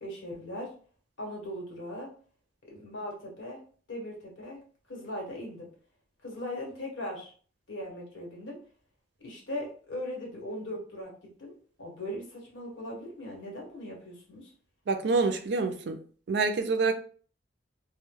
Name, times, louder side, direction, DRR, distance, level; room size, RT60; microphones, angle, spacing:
voice 1, 0.0-0.7 1.2-2.1 2.6-3.6 3.9-4.6 4.9-5.7 6.2-7.3 7.7-8.6 9.2-11.1 11.4-11.5 11.8-14.5, left 1 dB, 80° left, -1 dB, 1.0 m, -39 dB
voice 2, 14.9-16.0 16.3-16.9, right 4 dB, 60° right, 6 dB, 0.4 m, -26 dB
2.2 x 2.0 x 3.1 m, 0.43 s
head